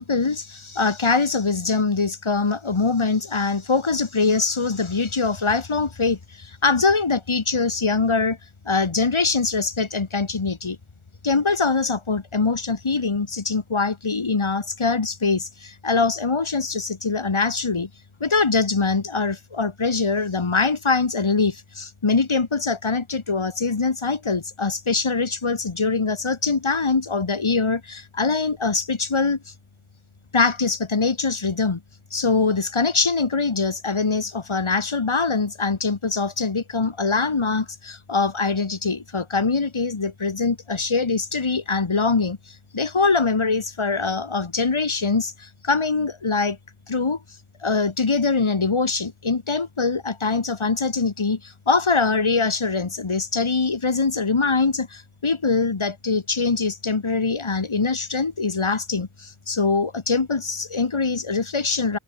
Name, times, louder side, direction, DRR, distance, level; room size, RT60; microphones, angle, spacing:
voice 1, 0.0-8.4 8.7-10.8 11.2-17.9 18.2-29.4 30.3-31.8 32.1-46.6 46.9-47.2 47.6-62.0, left 4 dB, 75° left, 5.2 m, -23 dB
wide cardioid pair, 50°, 49 cm